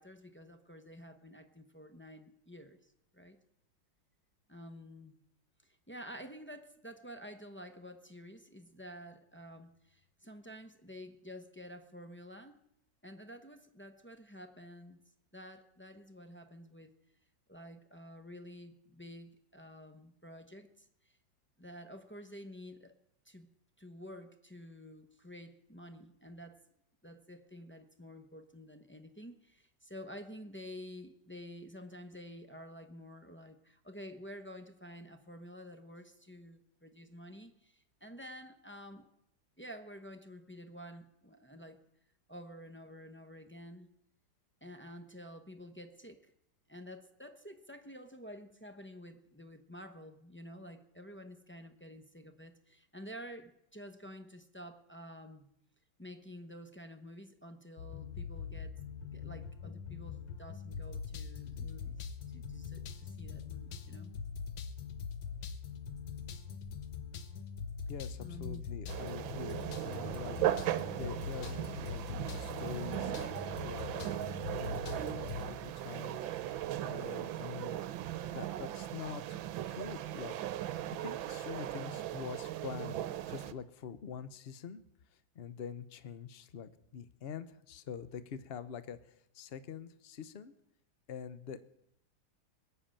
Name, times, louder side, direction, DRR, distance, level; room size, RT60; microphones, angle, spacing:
voice 1, 0.0-3.4 4.5-5.2 5.6-12.6 13.0-15.0 15.3-16.9 17.5-21.1 21.6-22.9 23.2-23.5 23.8-26.6 27.0-39.1 39.6-41.8 42.3-43.9 44.6-46.3 46.7-55.5 56.0-58.7 59.1-64.1 68.2-68.8 77.0-77.4, equal, 15° left, 5 dB, 0.4 m, -50 dB
sound 1, 57.8-75.5, left 6 dB, 85° left, 1.8 m, -43 dB
voice 2, 67.9-70.4 70.7-76.6 76.8-77.8 78.3-79.4 79.7-83.0 83.3-84.8 85.3-90.5 91.1-91.6, left 7 dB, 50° left, 13 dB, 0.7 m, -45 dB
sound 2, 68.9-83.5, right 12 dB, 85° right, 1.5 m, -38 dB
21.0 x 7.1 x 8.9 m, 0.78 s
omnidirectional pair, 2.1 m